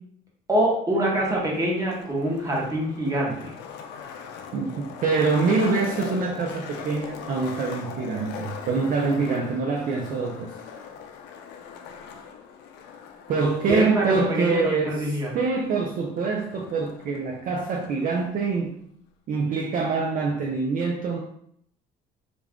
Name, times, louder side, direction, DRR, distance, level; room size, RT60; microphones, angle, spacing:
voice 1, 0.5-3.5 13.7-15.4, right 1 dB, 20° right, -3 dB, 1.0 m, -25 dB
Skateboard, 1.1-18.1, left 6 dB, 85° left, 0.4 m, -41 dB
voice 2, 4.5-10.5 13.3-18.8 19.3-21.2, right 4 dB, 55° right, 0 dB, 0.4 m, -25 dB
2.4 x 2.2 x 3.5 m, 0.69 s
cardioid pair, 110°, 17 cm